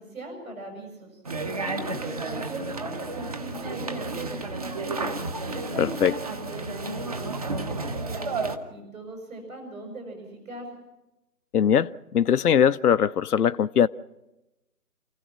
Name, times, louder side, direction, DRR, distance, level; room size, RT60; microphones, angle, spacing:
voice 1, 0.0-5.1 5.5-10.8, right 1 dB, 60° right, 6.8 m, -39 dB
sound 1, 1.2-8.6, right 3 dB, 25° right, 0.9 m, -32 dB
voice 2, 5.8-6.1 11.5-13.9, left 8 dB, 75° left, 0.6 m, -21 dB
29.0 x 15.5 x 6.0 m
figure-of-eight pair, 150°, 46 cm